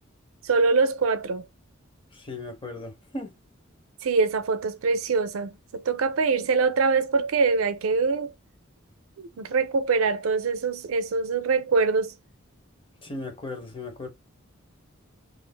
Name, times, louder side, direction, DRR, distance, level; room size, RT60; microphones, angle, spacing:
voice 1, 0.4-1.5 4.0-8.3 9.2-12.1, right 4 dB, 80° right, 0.4 m, -24 dB
voice 2, 2.1-3.3 13.0-14.1, left 2 dB, 25° left, 0.6 m, -37 dB
2.4 x 2.3 x 3.2 m
head